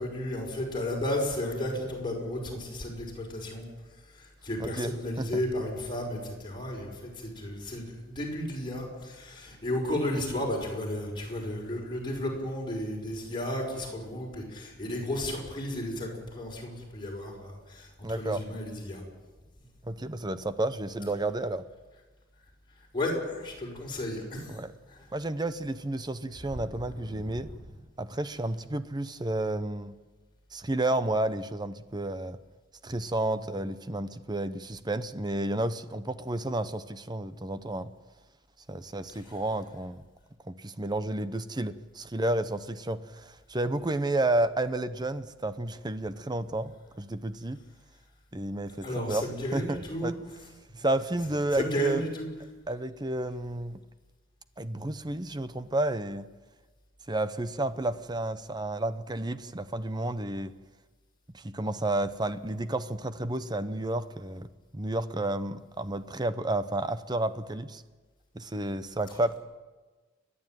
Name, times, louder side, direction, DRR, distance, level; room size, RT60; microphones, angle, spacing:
voice 1, 0.0-3.7 4.2-17.9 18.2-19.0 22.9-24.6 24.9-25.0 26.5-26.6 27.1-27.2 48.8-50.1 50.7-50.9 51.5-52.3, left 1 dB, 25° left, -1 dB, 5.7 m, -33 dB
voice 2, 4.6-5.4 18.0-18.4 19.8-21.6 24.5-24.7 25.1-27.5 28.0-29.9 30.5-32.4 32.8-37.9 38.7-40.0 40.5-46.7 47.0-47.6 48.3-49.2 49.5-50.1 50.8-52.0 52.7-53.8 54.6-56.3 57.1-60.5 61.3-64.5 64.7-67.8 68.3-69.4, right 2 dB, 20° right, 12 dB, 0.8 m, -31 dB
29.5 x 11.5 x 9.2 m, 1.3 s
head